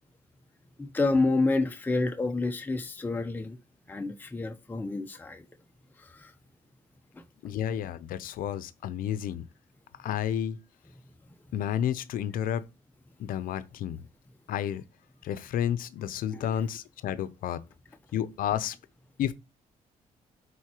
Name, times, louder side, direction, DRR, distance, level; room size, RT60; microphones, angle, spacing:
voice 1, 0.8-3.6 3.9-5.4 6.0-6.3, left 3 dB, 10° left, 0.7 m, -28 dB
voice 2, 7.4-9.5 10.0-10.6 11.5-12.7 13.2-14.1 14.5-14.8 15.2-17.6 18.1-18.8 19.2-19.3, left 10 dB, 75° left, 0.6 m, -31 dB
12.0 x 4.1 x 3.0 m
cardioid pair, 90°, 15 cm